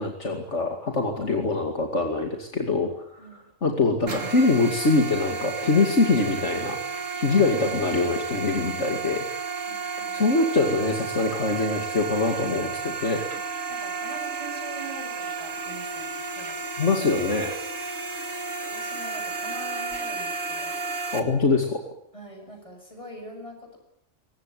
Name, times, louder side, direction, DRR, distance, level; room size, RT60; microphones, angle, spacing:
voice 1, 0.0-3.0 3.6-9.2 10.1-13.2 16.8-17.5 21.1-21.8, left 3 dB, 60° left, 3 dB, 2.8 m, -24 dB
sound 1, 4.1-21.2, right 5 dB, 75° right, 2.8 m, -32 dB
voice 2, 7.3-8.0 9.7-10.2 13.7-16.6 18.7-20.8 22.1-23.8, equal, 25° left, 3 dB, 7.9 m, -43 dB
23.5 x 19.0 x 9.4 m, 0.74 s
omnidirectional pair, 1.3 m